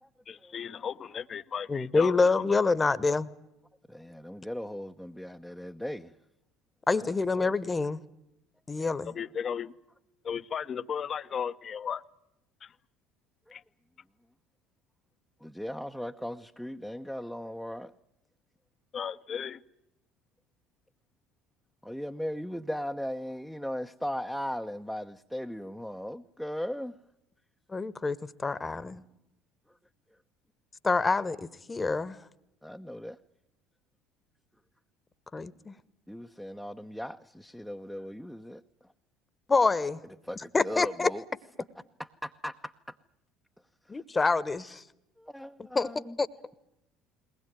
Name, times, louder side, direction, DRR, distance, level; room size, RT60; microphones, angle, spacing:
voice 1, 0.3-2.4 9.0-9.7 10.2-12.0 12.6-12.7 13.5-13.6 18.9-19.6, left 7 dB, 40° left, 1.0 m, -35 dB
voice 2, 1.7-3.3 6.9-8.0 8.7-9.1 27.7-29.0 30.8-32.2 35.3-35.7 39.5-40.0 40.5-41.1 43.9-44.8 45.7-45.9 46.2-46.3, left 3 dB, 20° left, 1.3 m, -27 dB
voice 3, 3.9-6.1 7.0-7.1 7.4-7.5 13.5-13.6 15.4-17.9 21.8-27.0 32.6-33.2 36.1-38.6 40.2-41.2 42.0-43.0 45.2-46.2, equal, ahead, 0.9 m, -38 dB
21.5 x 19.5 x 9.3 m
figure-of-eight pair, 60°, 0 cm